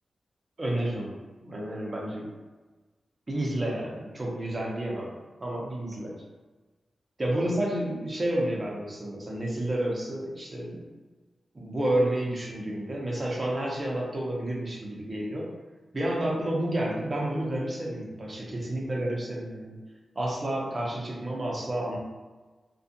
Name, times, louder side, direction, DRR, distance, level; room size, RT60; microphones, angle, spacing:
voice 1, 0.6-1.1 1.4-2.3 3.3-5.1 5.4-6.1 7.2-10.8 11.5-15.5 15.9-19.8 20.2-22.0, right 1 dB, 25° right, -3 dB, 0.6 m, -30 dB
2.5 x 2.3 x 2.7 m, 1.3 s
wide cardioid pair, 160°, 0 cm